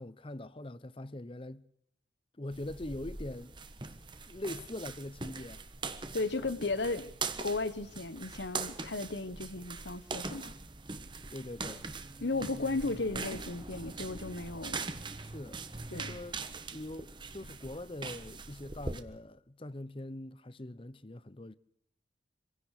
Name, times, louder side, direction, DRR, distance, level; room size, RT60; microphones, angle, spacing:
voice 1, 0.0-1.6 2.4-3.5 4.3-5.6 6.4-6.5 11.3-11.9 12.6-13.0 15.2-15.6 15.9-21.6, left 1 dB, 30° left, 0.8 m, -43 dB
sound 1, 2.5-19.0, right 4 dB, 25° right, 1.4 m, -42 dB
voice 2, 6.1-7.1 7.4-10.5 12.2-14.9 15.9-16.2, left 3 dB, 70° left, 1.2 m, -35 dB
26.0 x 16.5 x 6.6 m
head